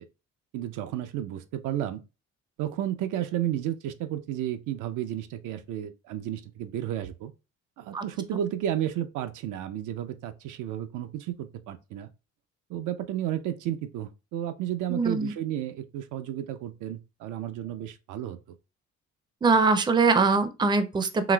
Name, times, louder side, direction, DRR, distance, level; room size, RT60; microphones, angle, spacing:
voice 1, 0.5-2.0 2.6-7.3 7.8-12.1 12.7-18.4, right 11 dB, 85° right, 0.5 m, -32 dB
voice 2, 14.9-15.3 19.4-21.3, right 4 dB, 15° right, 0.4 m, -22 dB
3.9 x 2.5 x 2.2 m
cardioid pair, 90°, 30 cm